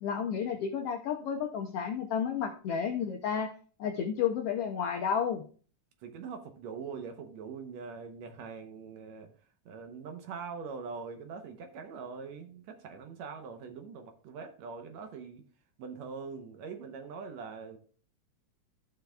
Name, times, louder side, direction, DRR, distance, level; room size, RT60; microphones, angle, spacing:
voice 1, 0.0-3.5 3.8-5.4, left 7 dB, 80° left, 4 dB, 1.3 m, -31 dB
voice 2, 6.0-9.3 9.7-15.4 15.8-17.8, right 5 dB, 70° right, 6 dB, 2.0 m, -43 dB
14.0 x 5.7 x 2.3 m, 0.42 s
omnidirectional pair, 3.5 m